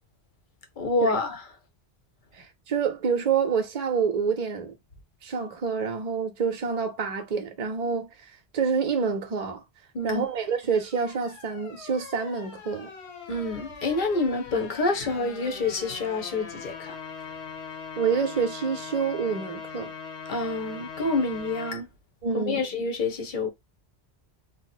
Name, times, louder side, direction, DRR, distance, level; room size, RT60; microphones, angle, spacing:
voice 1, 0.8-1.4 9.9-10.2 13.3-17.0 20.3-21.9 22.3-23.5, left 3 dB, 50° left, 0.8 m, -27 dB
voice 2, 2.3-4.8 5.2-8.1 8.5-9.6 10.0-12.9 18.0-19.9 22.2-22.6, right 6 dB, 45° right, 0.7 m, -27 dB
sound 1, 10.1-21.8, left 6 dB, 80° left, 1.0 m, -41 dB
2.8 x 2.0 x 4.0 m
omnidirectional pair, 1.1 m